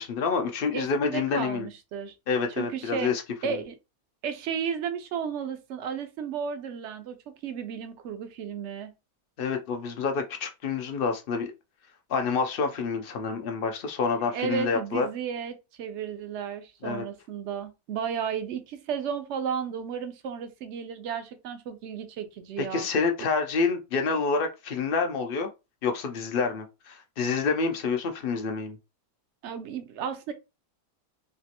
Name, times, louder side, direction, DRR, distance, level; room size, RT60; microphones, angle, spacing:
voice 1, 0.0-1.7 2.3-3.2 3.5-3.6 9.4-11.5 12.1-15.1 16.8-17.0 22.6-25.5 25.8-28.8, left 5 dB, 65° left, 0.5 m, -28 dB
voice 2, 0.7-2.1 2.6-3.1 3.4-3.7 4.2-8.9 14.3-22.9 29.4-30.3, right 7 dB, 60° right, 0.8 m, -33 dB
3.3 x 2.9 x 2.8 m
omnidirectional pair, 1.6 m